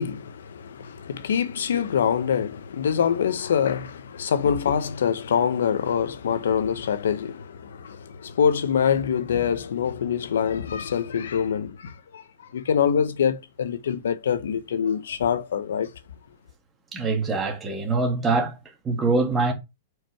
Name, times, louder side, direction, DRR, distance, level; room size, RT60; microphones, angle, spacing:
voice 1, 0.0-12.2 12.5-15.9, left 7 dB, 85° left, 0.8 m, -25 dB
voice 2, 16.9-18.6 18.8-19.5, right 3 dB, 15° right, 2.1 m, -24 dB
4.8 x 4.6 x 4.5 m
hypercardioid pair, 140°, 0 cm